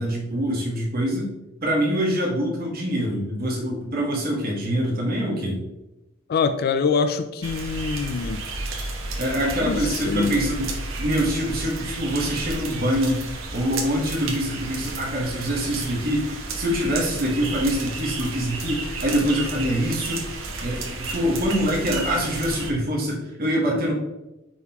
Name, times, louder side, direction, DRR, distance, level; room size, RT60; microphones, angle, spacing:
voice 1, 0.0-1.3 1.6-5.6 9.2-13.2 13.5-16.3 16.5-20.2 20.6-23.9, equal, 50° right, -2 dB, 1.4 m, -24 dB
voice 2, 6.3-8.4 9.6-9.8 10.1-10.4, left 5 dB, 50° left, 10 dB, 0.3 m, -24 dB
sound 1, 7.4-22.7, right 3 dB, 80° right, 1.1 m, -32 dB
9.3 x 3.9 x 2.9 m, 0.96 s
head